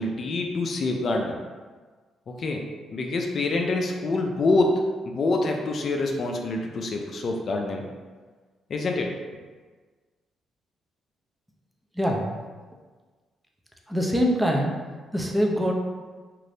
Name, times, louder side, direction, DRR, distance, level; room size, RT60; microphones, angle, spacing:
voice 1, 0.0-1.4 2.3-2.7 2.9-7.8 8.7-9.1, left 2 dB, 50° left, 2 dB, 0.4 m, -26 dB
voice 2, 12.0-12.3 13.9-14.7 15.1-15.7, equal, 5° right, 0 dB, 0.4 m, -23 dB
2.5 x 2.5 x 3.3 m, 1.4 s
cardioid pair, 90°, 0 cm